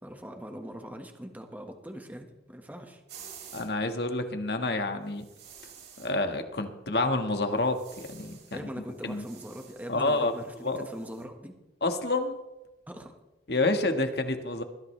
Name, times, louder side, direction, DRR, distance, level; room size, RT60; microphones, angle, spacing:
voice 1, 0.0-3.0 8.5-11.5 12.9-13.2, equal, 10° right, 3 dB, 1.5 m, -42 dB
sound 1, 3.1-3.7 5.2-6.1 7.6-8.6 8.9-11.2, right 7 dB, 85° right, 5.7 m, -50 dB
voice 2, 3.5-5.2 6.0-8.4 9.0-9.2 9.9-10.3 10.6-10.8 11.8-12.4 13.5-14.6, left 2 dB, 65° left, 6 dB, 1.7 m, -28 dB
21.5 x 14.5 x 3.3 m, 1.0 s
head